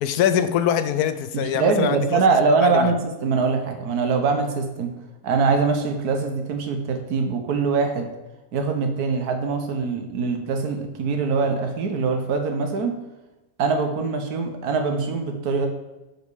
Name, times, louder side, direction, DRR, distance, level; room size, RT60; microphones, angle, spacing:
voice 1, 0.0-2.2 2.6-2.9, left 9 dB, 80° left, 12 dB, 1.1 m, -23 dB
voice 2, 1.3-4.9 5.2-8.1 8.5-12.9 13.6-15.7, right 4 dB, 80° right, 4 dB, 1.4 m, -23 dB
6.4 x 5.3 x 4.7 m, 1.1 s
omnidirectional pair, 1.6 m